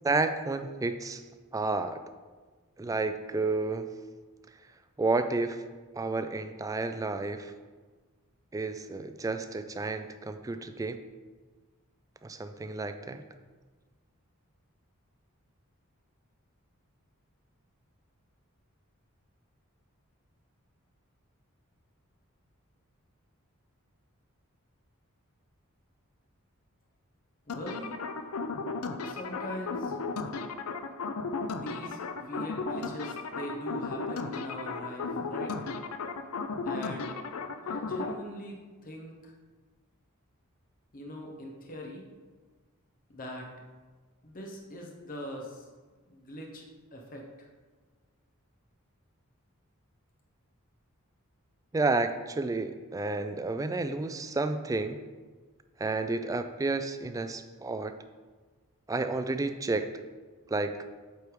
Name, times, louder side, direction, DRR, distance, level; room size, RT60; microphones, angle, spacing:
voice 1, 0.0-1.2 1.5-2.0 2.8-3.9 5.0-5.6 6.0-7.5 8.5-11.0 12.2-13.2 51.7-55.0 55.8-57.9 58.9-59.9 60.5-60.7, right 3 dB, 15° right, 9 dB, 0.3 m, -31 dB
sound 1, 27.5-38.1, left 4 dB, 85° left, 0.5 m, -35 dB
voice 2, 27.5-28.0 29.0-30.0 31.5-35.7 36.6-37.2 37.6-39.3 40.9-42.0 43.1-43.5 44.2-45.7 46.1-46.6 46.9-47.5, equal, 40° left, 0 dB, 0.9 m, -42 dB
8.0 x 3.4 x 4.7 m, 1.4 s
head